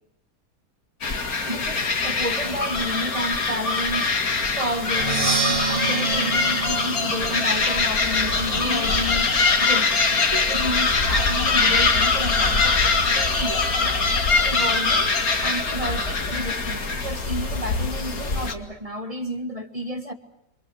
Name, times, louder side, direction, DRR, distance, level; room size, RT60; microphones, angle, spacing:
sound 1, 1.0-18.5, left 4 dB, 60° left, 2.6 m, -23 dB
voice 1, 1.4-4.2 4.5-9.3 9.6-14.0 14.4-15.1 15.4-20.1, equal, 20° right, 1.8 m, -31 dB
Percussion, 4.9-8.7, right 4 dB, 40° right, 2.2 m, -28 dB
sound 2, 5.6-5.8 6.6-6.8 7.6-7.8 8.6-8.8 9.6-9.8 10.6-10.8 11.6-11.8 12.6-12.8 13.6-13.8, left 3 dB, 10° left, 1.1 m, -35 dB
29.0 x 25.0 x 6.5 m
omnidirectional pair, 1.7 m